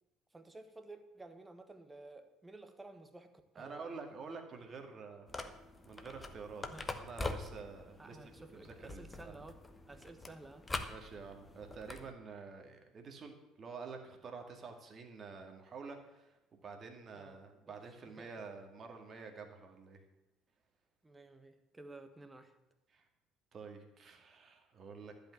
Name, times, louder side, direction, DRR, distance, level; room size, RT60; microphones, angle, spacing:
voice 1, 0.3-3.9 6.7-6.9 8.0-9.6 9.9-10.7 17.1-17.4 17.7-18.3 21.0-22.6, right 2 dB, 15° right, 8 dB, 1.4 m, -53 dB
voice 2, 3.6-5.6 5.9-9.4 10.9-20.0 22.9-23.0 23.5-25.1, right 4 dB, 40° right, 4 dB, 2.0 m, -49 dB
sound 1, 5.3-12.1, left 2 dB, 20° left, 1.0 m, -44 dB
11.5 x 5.3 x 8.7 m, 0.95 s
figure-of-eight pair, 55°, 0 cm